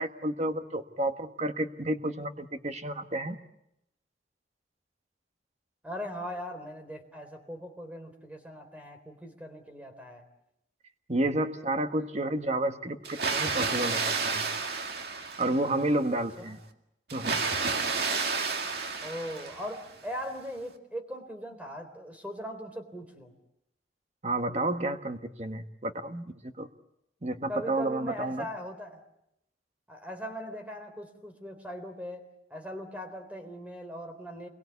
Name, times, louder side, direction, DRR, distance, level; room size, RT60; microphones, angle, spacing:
voice 1, 0.0-3.4 11.1-14.0 14.3-14.4 15.4-16.6 17.1-17.4 24.2-26.7 27.2-28.5, right 1 dB, 40° right, 7 dB, 1.5 m, -30 dB
voice 2, 5.8-10.3 16.4-16.6 19.0-23.3 27.5-29.0 29.9-34.5, equal, 10° right, 6 dB, 3.9 m, -40 dB
Water, 13.0-15.9 17.1-19.9, right 4 dB, 60° right, 2.2 m, -31 dB
27.5 x 22.5 x 8.4 m, 0.83 s
head